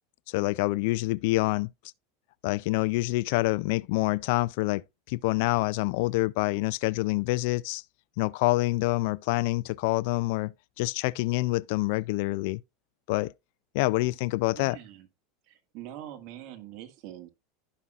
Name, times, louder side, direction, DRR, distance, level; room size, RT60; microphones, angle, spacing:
voice 1, 0.3-1.7 2.4-4.8 5.1-7.8 8.2-12.6 13.1-13.3 13.7-14.8, left 21 dB, 65° left, 0.4 m, -26 dB
voice 2, 14.5-15.1 15.5-17.3, right 12 dB, 55° right, 1.9 m, -44 dB
15.5 x 5.6 x 2.4 m
supercardioid pair, 130°, 0 cm